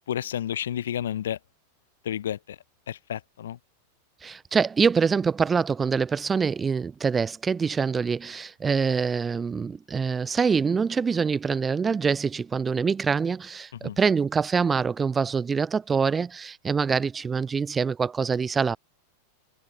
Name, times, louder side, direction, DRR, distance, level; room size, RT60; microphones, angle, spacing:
voice 1, 0.1-1.4 2.0-2.6 2.9-3.6 13.8-14.0, left 10 dB, 60° left, 6.7 m, -31 dB
voice 2, 4.2-18.8, right 5 dB, 15° right, 4.9 m, -25 dB
figure-of-eight pair, 90°, 0 cm